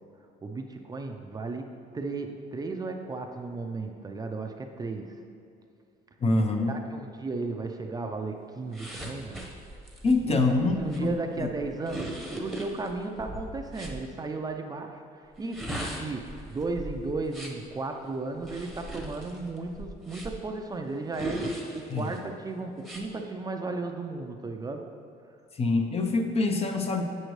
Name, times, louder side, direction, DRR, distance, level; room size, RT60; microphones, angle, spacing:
voice 1, 0.4-5.2 6.6-9.4 10.3-24.9, right 3 dB, 20° right, 4 dB, 0.5 m, -35 dB
voice 2, 6.2-6.8 10.0-11.5 21.9-22.2 25.5-27.0, left 3 dB, 35° left, 5 dB, 0.7 m, -25 dB
sound 1, 8.7-14.0 15.3-17.7 18.4-20.5 21.1-22.2 22.8-23.0, right 1 dB, ahead, 1.0 m, -38 dB
8.0 x 6.5 x 3.1 m, 2.5 s
cardioid pair, 110°, 17 cm